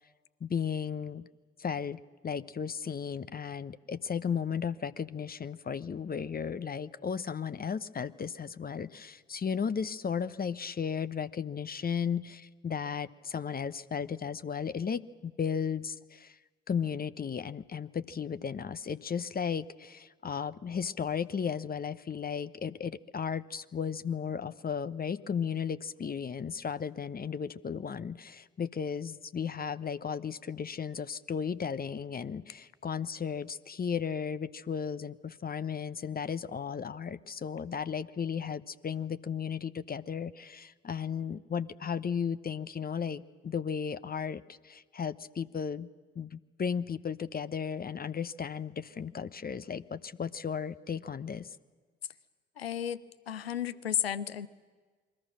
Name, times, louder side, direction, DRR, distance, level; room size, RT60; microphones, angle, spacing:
voice 1, 0.4-1.3 1.6-16.4 16.7-45.9 46.1-51.6, left 7 dB, 30° left, 14 dB, 0.9 m, -35 dB
voice 2, 52.6-54.5, left 9 dB, 85° left, 16 dB, 0.6 m, -33 dB
28.5 x 22.5 x 6.3 m, 1.4 s
figure-of-eight pair, 45°, 30 cm